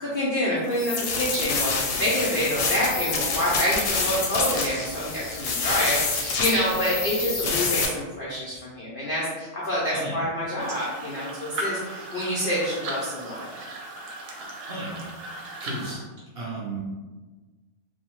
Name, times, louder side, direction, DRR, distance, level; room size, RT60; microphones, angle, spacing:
voice 1, 0.0-13.5, equal, 90° left, -7 dB, 0.4 m, -27 dB
sound 1, 0.7-7.9, left 4 dB, 70° left, 0.8 m, -27 dB
sound 2, 2.8-7.8, right 3 dB, 70° right, 1.0 m, -41 dB
voice 2, 7.4-7.7 9.9-10.2 14.7-15.0 15.6-16.0 16.3-16.8, right 2 dB, 55° right, -6 dB, 0.6 m, -34 dB
sound 3, 10.6-15.9, right 2 dB, 90° right, 1.1 m, -37 dB
2.6 x 2.1 x 2.9 m, 1.3 s
omnidirectional pair, 1.6 m